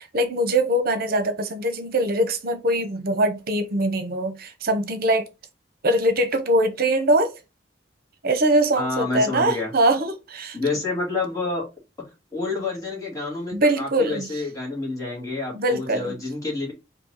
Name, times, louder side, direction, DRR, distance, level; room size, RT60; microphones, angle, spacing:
voice 1, 0.0-5.3 5.8-7.3 8.2-10.6 13.5-14.3 15.5-16.1, right 1 dB, 55° right, 0.8 m, -22 dB
voice 2, 8.7-9.7 10.5-11.7 12.3-16.7, left 3 dB, 20° left, 1.9 m, -28 dB
4.5 x 2.8 x 3.9 m
head